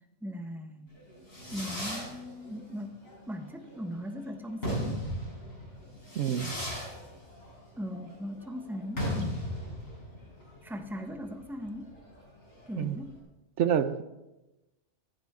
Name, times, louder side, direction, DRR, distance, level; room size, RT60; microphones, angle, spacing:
voice 1, 0.2-0.9 1.5-3.0 3.3-5.0 7.8-9.4 10.6-12.0 12.7-13.2, equal, ahead, 5 dB, 1.0 m, -39 dB
Fireworks, 0.9-13.2, left 1 dB, 55° left, 5.9 m, -38 dB
voice 2, 6.1-6.6 12.8-13.0 13.6-14.0, right 8 dB, 80° right, 13 dB, 1.0 m, -27 dB
15.5 x 15.0 x 3.7 m, 1.0 s
omnidirectional pair, 1.2 m